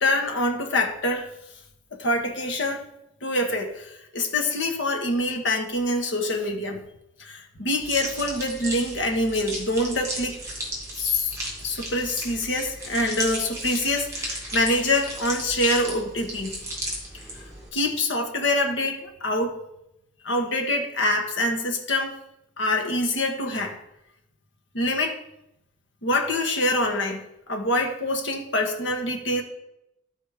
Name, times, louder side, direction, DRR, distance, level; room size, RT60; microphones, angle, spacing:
voice 1, 0.0-1.3 1.9-2.8 3.2-6.8 7.2-10.4 11.0-11.4 11.6-16.6 17.7-19.6 20.2-22.1 22.6-23.8 24.7-25.2 26.0-29.4, left 1 dB, 80° left, 3 dB, 1.3 m, -25 dB
sound 1, 7.8-17.7, right 1 dB, 15° right, 2.2 m, -35 dB
12.5 x 4.3 x 4.9 m, 0.84 s
head